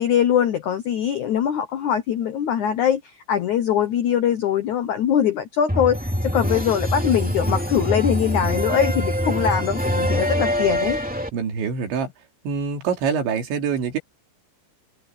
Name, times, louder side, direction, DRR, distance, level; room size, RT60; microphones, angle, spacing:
voice 1, 0.0-11.0, left 9 dB, 80° left, 1.7 m, -22 dB
sound 1, 5.7-11.3, equal, 5° right, 1.5 m, -24 dB
voice 2, 11.3-12.1 12.5-14.0, right 6 dB, 85° right, 5.4 m, -25 dB
omnidirectional pair, 5.1 m